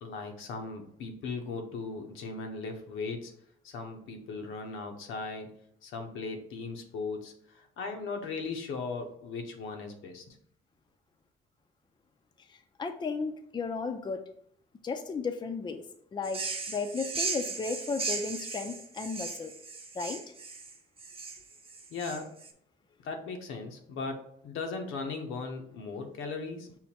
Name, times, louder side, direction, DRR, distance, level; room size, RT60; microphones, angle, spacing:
voice 1, 0.0-3.3 3.6-5.5 5.8-10.4 21.9-22.3 23.0-26.7, left 4 dB, 85° left, 4 dB, 0.8 m, -38 dB
voice 2, 12.8-14.2 14.8-15.8 16.1-19.5 19.9-20.2, left 4 dB, 20° left, 7 dB, 0.4 m, -34 dB
sound 1, 16.2-22.5, right 4 dB, 30° right, 0.7 m, -37 dB
5.6 x 2.2 x 4.2 m, 0.67 s
cardioid pair, 90°, 20 cm